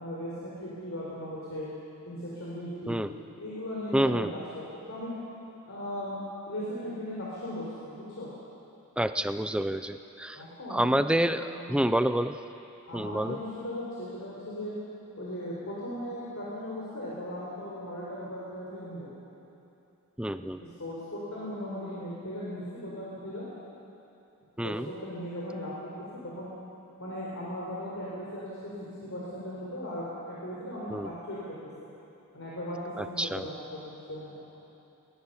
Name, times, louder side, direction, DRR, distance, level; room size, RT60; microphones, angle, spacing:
voice 1, 0.0-1.7 2.0-3.0 3.4-4.4 4.7-5.1 5.7-6.2 6.5-8.3 10.3-10.9 11.5-11.8 12.9-14.7 15.2-19.1 20.6-23.5 24.6-25.9 26.2-26.5 27.0-28.7 29.0-31.4 32.3-34.4, left 1 dB, 60° left, -7 dB, 4.6 m, -37 dB
voice 2, 3.9-4.3 9.0-10.4 10.7-12.4 12.9-13.4 20.2-20.6 24.6-24.9 30.9-31.1 33.0-33.5, right 1 dB, 5° right, 10 dB, 0.5 m, -28 dB
22.0 x 20.0 x 7.3 m, 2.8 s
head